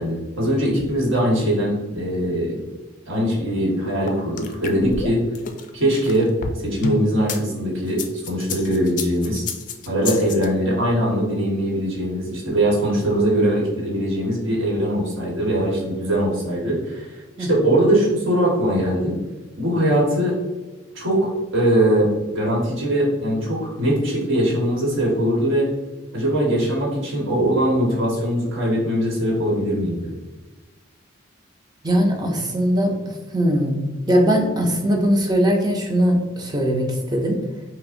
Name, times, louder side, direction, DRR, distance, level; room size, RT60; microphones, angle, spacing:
voice 1, 0.0-2.6 3.1-5.2 5.7-6.3 6.6-9.4 9.9-17.1 17.4-19.2 19.6-20.3 20.9-25.7 26.1-30.1, right 1 dB, 75° right, -3 dB, 1.3 m, -21 dB
sound 1, 4.1-7.4 7.9-10.5, left 4 dB, 40° left, 0.3 m, -30 dB
voice 2, 17.4-17.7 31.8-37.4, equal, 20° right, 1 dB, 0.5 m, -20 dB
5.4 x 2.1 x 2.5 m, 1.2 s
head